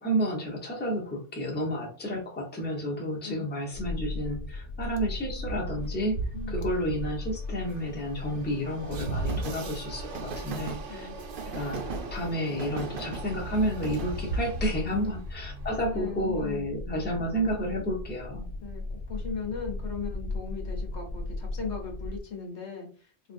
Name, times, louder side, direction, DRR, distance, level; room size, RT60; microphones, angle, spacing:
voice 1, 0.0-6.2 6.5-11.1 11.5-11.8 12.1-18.4, equal, 10° left, -2 dB, 0.7 m, -31 dB
sound 1, 3.7-22.2, left 2 dB, 55° left, 0.4 m, -38 dB
Train, 5.5-15.9, right 3 dB, 60° right, 0.6 m, -36 dB
voice 2, 15.8-16.7 18.6-23.3, left 5 dB, 75° left, 1 dB, 1.1 m, -38 dB
3.8 x 2.5 x 2.5 m, 0.41 s
omnidirectional pair, 1.2 m